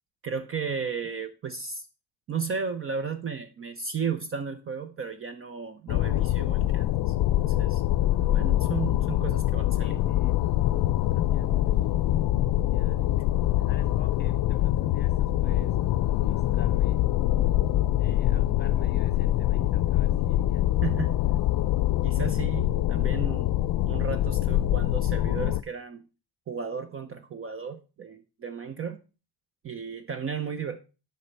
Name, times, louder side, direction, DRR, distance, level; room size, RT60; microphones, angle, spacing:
voice 1, 0.2-1.9 2.3-7.8 8.2-10.1 20.8-21.2 22.0-23.5 23.9-26.0 26.5-29.0 29.6-30.8, right 6 dB, 30° right, 0.5 m, -34 dB
sound 1, 5.9-25.6, left 14 dB, 60° left, 0.5 m, -24 dB
voice 2, 9.8-12.1 12.7-13.1 13.6-15.8 16.2-17.0 18.0-20.9, left 5 dB, 25° left, 1.0 m, -46 dB
8.2 x 5.3 x 5.5 m
cardioid pair, 170°, 42 cm